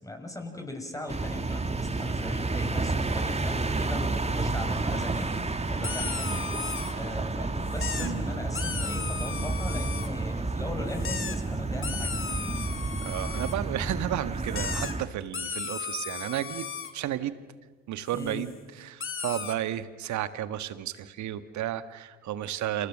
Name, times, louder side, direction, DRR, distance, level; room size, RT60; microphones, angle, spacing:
voice 1, 0.0-6.4 6.9-12.6 18.1-18.5, left 1 dB, 10° left, 3 dB, 6.1 m, -39 dB
sound 1, 1.1-15.0, right 3 dB, 20° right, 2.2 m, -30 dB
sound 2, 5.1-5.4 5.8-6.9 7.7-8.1 8.6-10.1 10.9-11.4 11.8-13.6 14.4-14.9 15.3-16.9 18.1-18.5 19.0-19.6, left 6 dB, 40° left, 2.6 m, -36 dB
voice 2, 13.0-16.7 16.9-17.4 17.9-22.9, right 12 dB, 60° right, 13 dB, 1.5 m, -33 dB
29.5 x 28.0 x 6.6 m, 1.4 s
hypercardioid pair, 50°, 33 cm